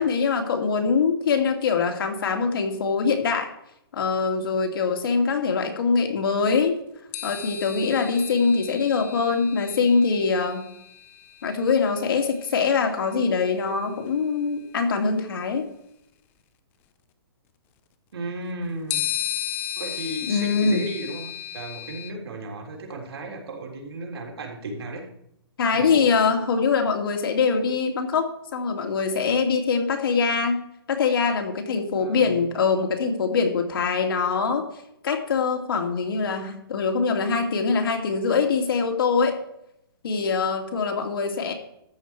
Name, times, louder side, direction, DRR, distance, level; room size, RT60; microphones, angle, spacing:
voice 1, 0.0-3.5 3.9-6.8 7.2-10.7 11.4-15.7 20.3-20.9 25.6-30.6 30.9-34.7 35.0-39.4 40.0-41.5, left 5 dB, 60° left, 4 dB, 2.3 m, -23 dB
sound 1, 7.1-12.8 14.1-14.2 18.9-22.1, left 12 dB, 15° left, 0.6 m, -34 dB
voice 2, 18.1-19.1 19.8-25.1 25.7-26.1 32.0-32.4, right 1 dB, 75° right, 0 dB, 3.7 m, -35 dB
13.0 x 8.4 x 4.6 m, 0.77 s
hypercardioid pair, 165°, 13 cm